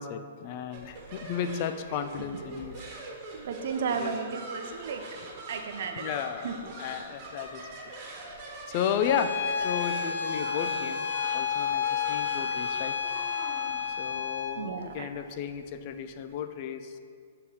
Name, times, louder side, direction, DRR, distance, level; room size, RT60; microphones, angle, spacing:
voice 1, 0.0-2.9 3.9-4.1 5.9-7.6 8.7-11.1 11.3-13.0 14.0-17.0, left 8 dB, 40° left, 9 dB, 0.4 m, -34 dB
sound 1, 0.7-16.3, right 2 dB, 35° right, 1.3 m, -43 dB
voice 2, 3.3-5.0 5.5-6.5 14.5-15.1, right 6 dB, 65° right, 5 dB, 0.7 m, -34 dB
Bowed string instrument, 9.0-14.6, left 7 dB, 80° left, 0.7 m, -30 dB
6.7 x 3.6 x 6.3 m, 2.1 s
hypercardioid pair, 150°, 0 cm